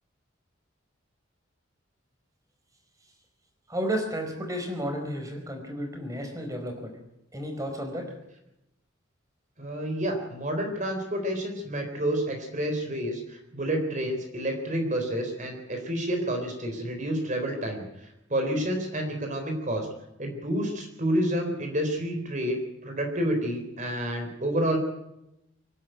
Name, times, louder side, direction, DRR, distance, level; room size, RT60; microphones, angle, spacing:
voice 1, 3.7-6.9 7.3-8.0, equal, 15° right, 3 dB, 4.7 m, -32 dB
voice 2, 9.6-19.9 20.2-24.8, right 1 dB, 40° right, 4 dB, 3.8 m, -29 dB
24.5 x 11.5 x 9.2 m, 0.86 s
head